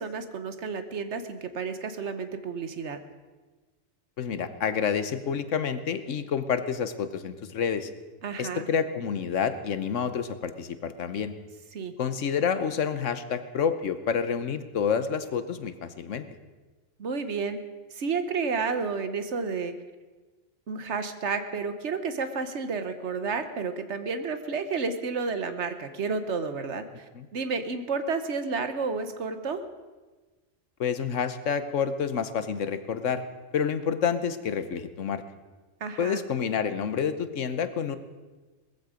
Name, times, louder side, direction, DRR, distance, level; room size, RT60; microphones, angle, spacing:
voice 1, 0.0-3.0 8.2-8.6 11.7-11.9 17.0-17.6 17.9-19.7 20.7-27.0 27.3-29.6 35.8-36.2, right 4 dB, 70° right, 9 dB, 1.4 m, -31 dB
voice 2, 4.2-7.9 8.4-11.3 12.0-16.2 27.1-27.3 30.8-33.2 33.5-35.2 36.0-38.0, left 7 dB, 90° left, 11 dB, 1.3 m, -28 dB
19.0 x 14.5 x 5.1 m, 1.3 s
omnidirectional pair, 1.2 m